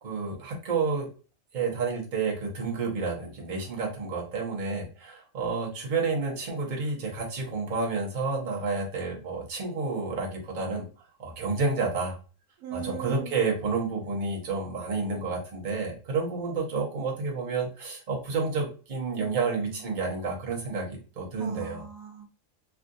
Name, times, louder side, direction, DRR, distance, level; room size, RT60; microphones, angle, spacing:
voice 1, 0.0-1.1 1.5-10.9 11.2-12.2 12.7-21.8, right 4 dB, 40° right, -1 dB, 1.0 m, -30 dB
voice 2, 12.6-13.3 19.2-19.9 21.4-22.3, right 8 dB, 85° right, 4 dB, 1.1 m, -40 dB
3.4 x 2.5 x 2.5 m, 0.36 s
omnidirectional pair, 1.4 m